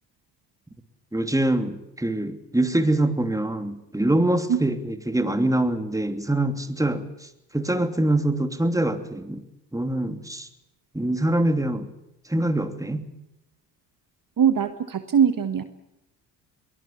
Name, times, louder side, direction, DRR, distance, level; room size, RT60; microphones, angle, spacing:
voice 1, 1.1-9.4 9.7-10.5 10.9-11.9 12.2-13.1, right 1 dB, 5° right, 8 dB, 3.0 m, -24 dB
voice 2, 14.4-15.6, right 8 dB, 40° right, 10 dB, 1.6 m, -21 dB
23.0 x 19.0 x 8.5 m, 0.85 s
hypercardioid pair, 50°, 49 cm